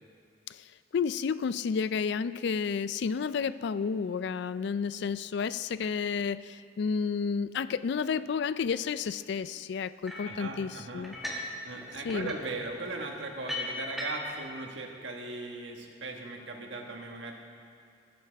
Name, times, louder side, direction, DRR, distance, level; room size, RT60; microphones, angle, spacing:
voice 1, 0.9-11.1 12.1-12.3, left 6 dB, 60° left, 15 dB, 0.3 m, -31 dB
sound 1, 10.1-10.4 11.0-11.5 11.8-14.4, left 1 dB, ahead, 1.9 m, -38 dB
voice 2, 10.2-11.1 11.6-17.3, right 2 dB, 80° right, 2 dB, 1.5 m, -38 dB
20.5 x 10.5 x 3.4 m, 2.4 s
head